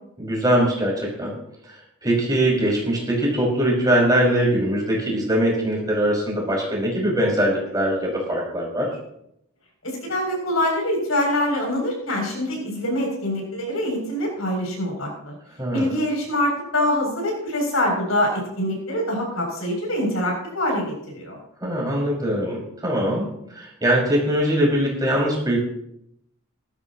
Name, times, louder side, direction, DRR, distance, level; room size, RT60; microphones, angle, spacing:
voice 1, 0.2-1.3 1.6-9.0 15.6-15.9 21.6-25.6, right 1 dB, 20° right, -3 dB, 5.4 m, -22 dB
voice 2, 9.8-15.3 15.7-21.4, left 1 dB, 85° left, 0 dB, 7.0 m, -24 dB
18.5 x 14.0 x 3.0 m, 0.76 s
head